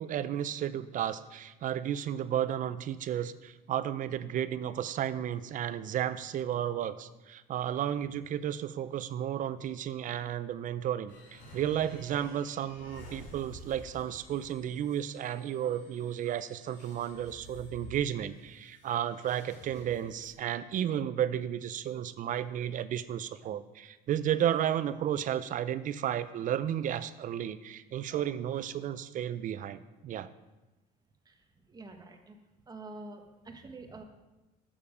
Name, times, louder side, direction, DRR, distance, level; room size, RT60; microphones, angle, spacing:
voice 1, 0.0-30.3, right 10 dB, 50° right, 14 dB, 0.4 m, -33 dB
sound 1, 11.1-20.4, equal, 90° left, 2.9 m, -52 dB
voice 2, 31.7-32.4 32.7-34.0, right 3 dB, 25° right, 5 dB, 1.1 m, -46 dB
7.0 x 6.9 x 5.0 m, 1.1 s
cardioid pair, 110°, 17 cm